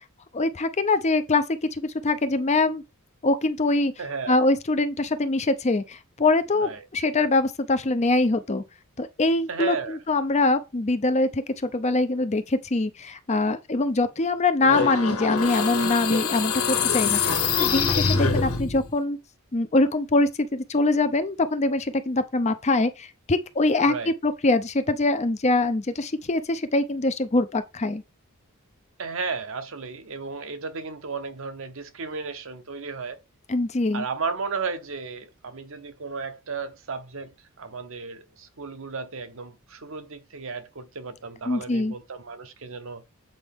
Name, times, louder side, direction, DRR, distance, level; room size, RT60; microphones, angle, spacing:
voice 1, 0.3-1.4 1.7-2.8 3.2-3.9 4.3-8.6 9.0-17.3 17.6-19.2 19.5-23.9 24.2-28.0 33.5-34.0 41.5-41.9, left 2 dB, 30° left, 0.6 m, -23 dB
voice 2, 4.0-4.4 6.6-6.9 9.5-10.0 14.6-14.9 17.2-17.7 23.8-24.1 29.0-33.2 33.9-37.3 37.6-43.0, right 4 dB, 65° right, 0.9 m, -34 dB
sound 1, 14.6-18.9, left 5 dB, 85° left, 1.5 m, -24 dB
7.8 x 4.6 x 3.6 m
head